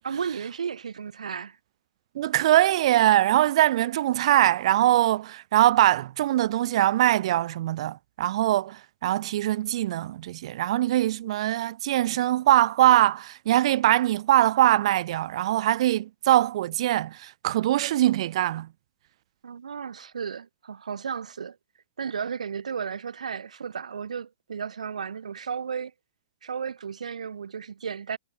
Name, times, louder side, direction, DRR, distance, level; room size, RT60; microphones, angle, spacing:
voice 1, 0.0-1.6 19.4-21.6 22.0-25.9 26.4-28.2, right 6 dB, 75° right, 2.0 m, -34 dB
voice 2, 2.1-18.7, right 14 dB, 55° right, 1.2 m, -22 dB
hypercardioid pair, 115°, 4 cm